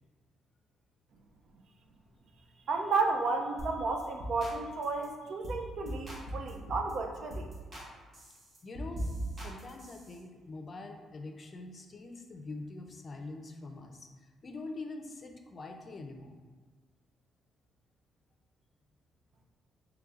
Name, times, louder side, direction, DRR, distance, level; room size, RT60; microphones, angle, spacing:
voice 1, 2.7-7.5, right 3 dB, 60° right, 4 dB, 0.5 m, -32 dB
sound 1, 3.6-3.7 4.0-4.6 4.8-5.1 5.4-5.6 5.9-6.9 7.3-7.9 8.1-10.2, right 1 dB, 45° right, 1.3 m, -39 dB
voice 2, 8.6-16.4, left 2 dB, 40° left, 4 dB, 0.5 m, -44 dB
6.0 x 3.1 x 2.5 m, 1.4 s
cardioid pair, 90°, 0 cm